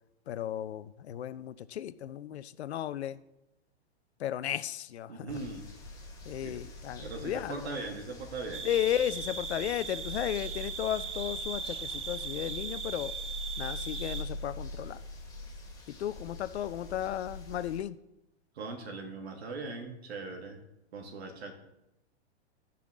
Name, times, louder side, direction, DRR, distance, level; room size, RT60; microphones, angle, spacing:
voice 1, 0.3-3.2 4.2-5.4 6.3-7.7 8.6-13.1 13.6-15.0 15.9-18.0, left 11 dB, 70° left, 15 dB, 0.6 m, -34 dB
voice 2, 5.1-5.8 6.4-6.7 7.0-8.7 18.5-20.6 20.9-21.5, right 3 dB, 65° right, 5 dB, 2.0 m, -40 dB
sound 1, 5.3-17.8, left 1 dB, 10° left, 2.3 m, -44 dB
sound 2, 8.5-14.2, right 5 dB, 20° right, 0.7 m, -39 dB
15.0 x 5.9 x 3.7 m, 0.88 s
hypercardioid pair, 115°, 34 cm